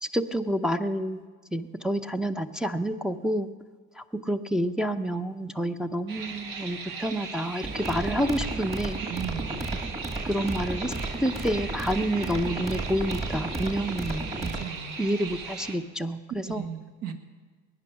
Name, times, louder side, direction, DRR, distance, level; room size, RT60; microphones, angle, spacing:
voice 1, 0.0-1.2 1.5-3.5 4.2-9.0 10.3-10.9 11.2-14.3 15.0-16.6, equal, ahead, 4 dB, 0.6 m, -28 dB
sound 1, 6.1-15.8, right 5 dB, 80° right, 1.8 m, -39 dB
sound 2, 7.6-14.6, right 2 dB, 20° right, 1.8 m, -33 dB
voice 2, 9.0-9.7 14.4-15.0 16.4-17.1, right 8 dB, 65° right, 6 dB, 1.7 m, -37 dB
21.0 x 9.8 x 5.9 m, 1.5 s
cardioid pair, 110°, 34 cm